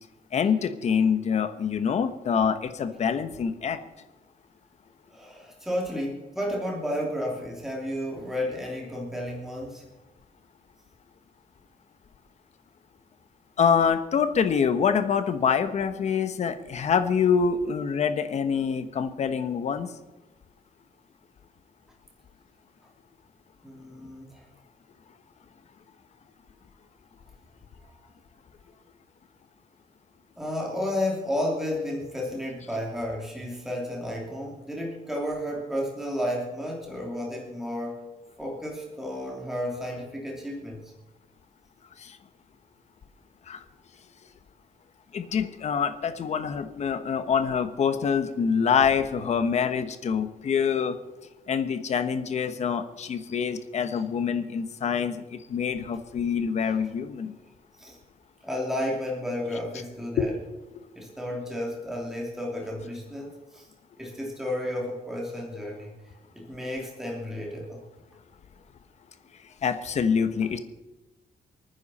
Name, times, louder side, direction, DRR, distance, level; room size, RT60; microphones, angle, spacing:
voice 1, 0.3-3.8 13.6-19.9 42.0-42.2 43.5-43.6 45.1-51.0 51.5-57.3 60.2-60.3 69.6-70.6, left 6 dB, 50° left, 9 dB, 1.2 m, -25 dB
voice 2, 5.1-9.8 23.6-24.5 30.4-38.0 38.4-40.9 56.6-56.9 57.8-58.0 58.4-60.3 60.9-63.7 64.0-65.9 66.3-67.8, left 1 dB, 5° right, -2 dB, 2.9 m, -32 dB
28.5 x 9.6 x 4.3 m, 1.1 s
wide cardioid pair, 170°, 15 cm